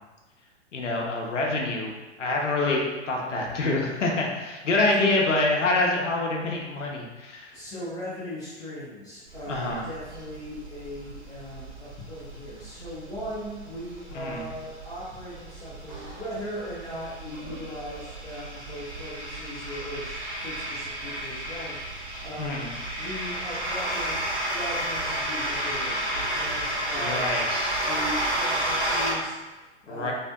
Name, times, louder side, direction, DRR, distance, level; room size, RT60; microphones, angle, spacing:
voice 1, 0.7-1.9 2.2-7.6 9.5-9.9 14.1-14.5 22.4-22.7 26.9-27.8 29.9-30.1, left 2 dB, 85° left, -1 dB, 0.5 m, -26 dB
voice 2, 7.5-21.8 22.2-22.6 23.0-27.2 27.9-30.1, equal, 10° left, -9 dB, 0.4 m, -38 dB
sound 1, 9.3-29.1, right 1 dB, 70° right, 1.1 m, -32 dB
2.6 x 2.4 x 2.2 m, 1.2 s
figure-of-eight pair, 100°, 36 cm